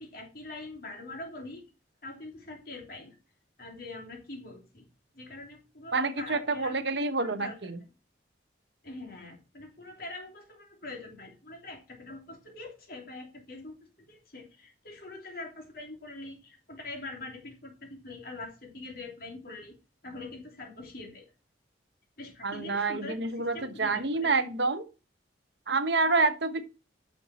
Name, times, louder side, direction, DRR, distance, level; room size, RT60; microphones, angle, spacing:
voice 1, 0.0-1.6 2.0-3.1 3.6-4.8 5.1-6.8 7.2-7.6 8.8-19.8 20.0-21.2 22.2-24.3, left 2 dB, 50° left, 2 dB, 3.0 m, -44 dB
voice 2, 5.9-7.8 22.4-24.9 25.7-26.6, right 3 dB, 70° right, 10 dB, 1.1 m, -28 dB
9.8 x 6.2 x 4.1 m, 0.31 s
head